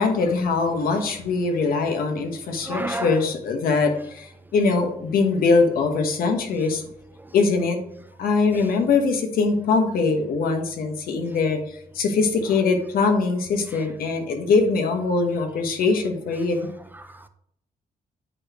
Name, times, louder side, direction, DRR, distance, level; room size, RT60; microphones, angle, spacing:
voice 1, 0.0-6.8 7.3-7.8 8.2-16.6, left 4 dB, 75° left, 1.2 m, -22 dB
voice 2, 2.5-3.2 7.2-7.3 16.9-17.3, right 1 dB, 15° right, 0.3 m, -32 dB
8.8 x 4.2 x 2.9 m
cardioid pair, 150°, 15 cm